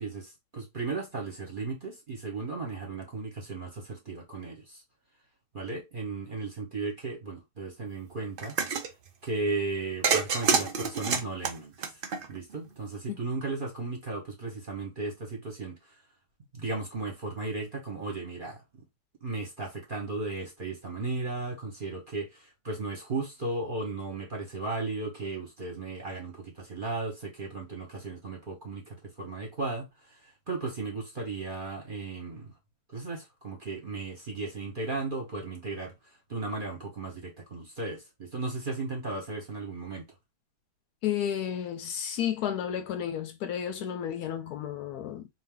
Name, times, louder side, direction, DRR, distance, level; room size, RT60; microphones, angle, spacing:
voice 1, 0.0-4.8 5.5-8.6 9.2-12.0 12.3-15.9 16.5-18.6 19.2-32.5 32.9-35.9 36.3-40.0, right 3 dB, 35° right, 0.9 m, -35 dB
sound 1, 8.4-8.9 10.0-12.5, right 5 dB, 90° right, 0.4 m, -27 dB
voice 2, 41.0-45.3, left 9 dB, 70° left, 1.0 m, -32 dB
3.8 x 2.6 x 3.7 m
omnidirectional pair, 1.9 m